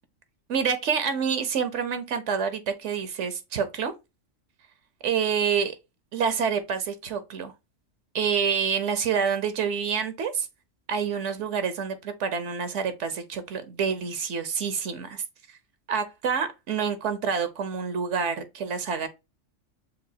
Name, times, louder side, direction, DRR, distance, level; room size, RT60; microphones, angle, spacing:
voice 1, 0.5-3.9 5.0-5.7 6.1-7.5 8.1-10.5 10.9-15.2 15.5-15.6 15.9-19.1, right 6 dB, 70° right, 1.0 m, -27 dB
6.9 x 2.6 x 2.6 m
omnidirectional pair, 1.3 m